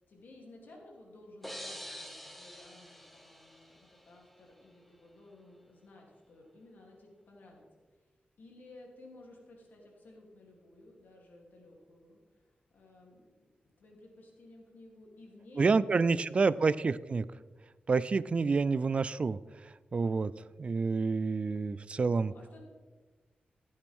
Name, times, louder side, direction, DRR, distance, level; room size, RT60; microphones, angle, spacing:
voice 1, 0.1-7.6 8.4-12.4 12.7-13.3 13.8-16.8 22.2-22.6, left 2 dB, 75° left, -1 dB, 3.0 m, -55 dB
sound 1, 1.4-4.2, equal, 5° left, 0.8 m, -46 dB
voice 2, 15.6-17.2 17.9-19.4 19.9-20.3 20.6-22.3, right 4 dB, 40° right, 18 dB, 0.3 m, -28 dB
15.0 x 8.7 x 3.6 m, 1.3 s
wide cardioid pair, 145°, 3 cm